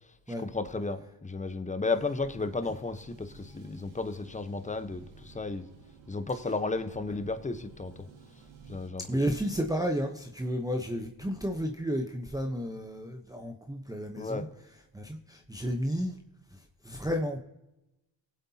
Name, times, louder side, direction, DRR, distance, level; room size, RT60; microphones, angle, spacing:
voice 1, 0.4-5.7 6.1-8.1 8.7-9.3 14.2-14.5, left 3 dB, 15° left, 1.0 m, -33 dB
sound 1, 2.2-8.9, right 5 dB, 85° right, 2.3 m, -54 dB
voice 2, 9.1-14.5 14.9-16.2 16.5-17.4, equal, 10° right, 0.9 m, -32 dB
19.0 x 8.0 x 2.9 m
cardioid pair, 85°, 45 cm